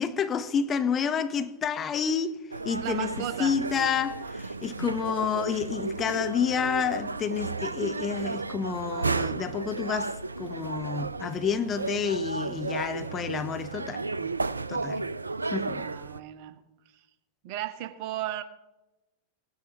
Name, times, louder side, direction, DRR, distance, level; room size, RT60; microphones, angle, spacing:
voice 1, 0.0-2.4 2.6-14.3 14.7-15.1 15.5-15.9, left 7 dB, 25° left, 0.8 m, -29 dB
sound 1, 2.5-16.2, right 3 dB, 80° right, 0.4 m, -33 dB
voice 2, 2.8-3.5 5.5-5.6 15.5-16.6 17.4-18.4, right 12 dB, 45° right, 0.9 m, -35 dB
18.0 x 9.6 x 2.9 m
figure-of-eight pair, 90°, 0 cm